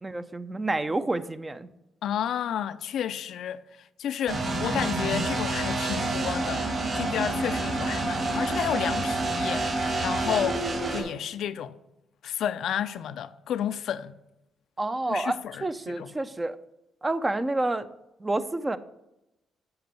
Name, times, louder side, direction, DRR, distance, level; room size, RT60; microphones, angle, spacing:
voice 1, 0.0-1.7 14.8-16.6 17.0-17.9 18.2-18.8, right 2 dB, 20° right, 0.6 m, -29 dB
voice 2, 2.0-3.6 4.0-6.7 6.9-10.6 10.9-11.7 12.2-14.1 15.1-16.1, left 9 dB, 70° left, 0.4 m, -31 dB
sound 1, 4.3-11.0, right 2 dB, 40° right, 3.2 m, -28 dB
7.9 x 6.1 x 6.7 m
cardioid pair, 90°, 0 cm